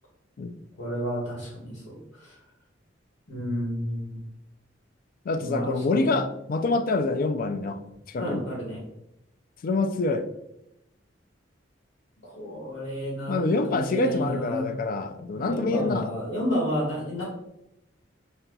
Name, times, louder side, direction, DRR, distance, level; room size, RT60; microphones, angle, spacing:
voice 1, 0.8-2.4 3.3-4.2 5.3-6.1 8.2-8.8 12.2-14.7 15.3-17.2, equal, 85° left, 1.5 m, -31 dB
voice 2, 5.3-7.8 8.1-8.5 9.6-10.3 13.3-16.1, left 3 dB, 50° left, 0.3 m, -26 dB
4.2 x 2.3 x 3.8 m
head